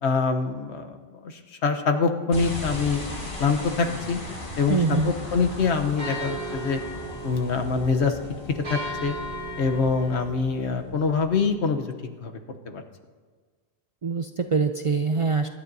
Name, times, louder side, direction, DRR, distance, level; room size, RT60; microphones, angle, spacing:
voice 1, 0.0-3.0 3.4-4.2 4.6-6.8 7.2-8.2 8.5-9.2 9.6-12.3 12.6-12.8, left 5 dB, 90° left, 5 dB, 1.2 m, -25 dB
sound 1, 2.3-11.7, left 1 dB, 50° left, 1.9 m, -38 dB
voice 2, 4.7-5.1 14.0-15.5, right 4 dB, 50° right, 6 dB, 0.4 m, -24 dB
sound 2, 5.1-10.3, right 1 dB, 70° right, 3.1 m, -37 dB
24.0 x 11.5 x 2.7 m, 1.5 s
omnidirectional pair, 1.1 m